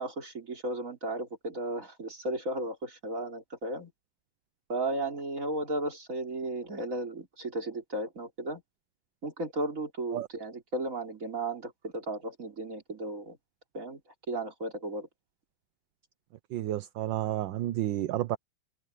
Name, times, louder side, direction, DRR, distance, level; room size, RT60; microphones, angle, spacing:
voice 1, 0.0-3.9 4.7-8.6 9.2-13.4 13.7-14.0 14.3-15.1, right 2 dB, 40° right, 4.2 m, -35 dB
voice 2, 16.5-18.4, right 13 dB, 75° right, 1.4 m, -31 dB
open air
omnidirectional pair, 2.1 m